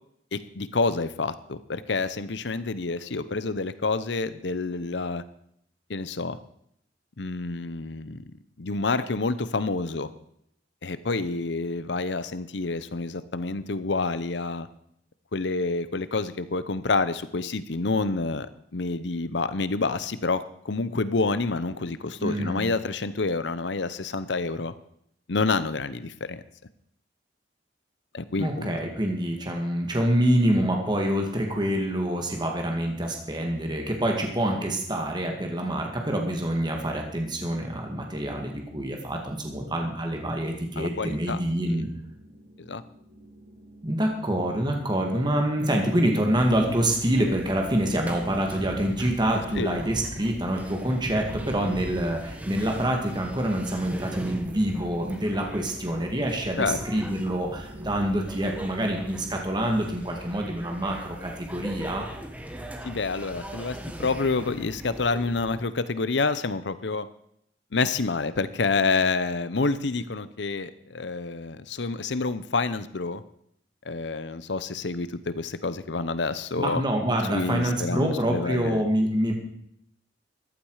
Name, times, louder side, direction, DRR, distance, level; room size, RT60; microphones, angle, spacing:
voice 1, 0.3-5.2 5.9-6.4 7.2-8.3 8.6-10.1 10.8-14.7 15.3-18.5 18.7-24.7 25.3-26.4 28.1-28.8 40.8-41.8 42.6-42.8 49.5-49.8 56.6-57.0 62.8-67.1 67.7-73.2 73.8-76.8 77.3-78.8, left 3 dB, 70° left, 14 dB, 0.8 m, -28 dB
voice 2, 22.2-22.7 28.4-41.9 43.8-62.1 76.6-79.3, right 1 dB, 25° right, 2 dB, 2.1 m, -26 dB
sound 1, 40.8-59.2, right 1 dB, 65° right, 5.8 m, -47 dB
sound 2, 46.3-65.6, equal, 10° right, 1.4 m, -39 dB
14.5 x 12.0 x 4.9 m, 0.70 s
head